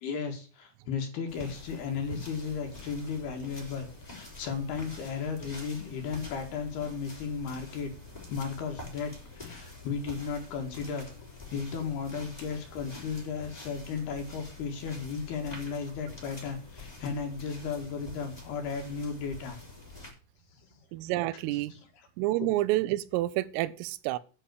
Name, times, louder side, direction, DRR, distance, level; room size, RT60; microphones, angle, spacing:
voice 1, 0.0-7.9 8.3-11.1 11.5-19.6 20.5-20.7 21.0-21.1 21.3-22.0 22.4-22.5, left 5 dB, 60° left, 3.3 m, -35 dB
sound 1, 1.3-20.1, left 3 dB, 10° left, 4.3 m, -47 dB
voice 2, 20.9-21.7 22.2-24.2, right 16 dB, 85° right, 3.3 m, -29 dB
11.0 x 5.6 x 8.1 m
omnidirectional pair, 5.7 m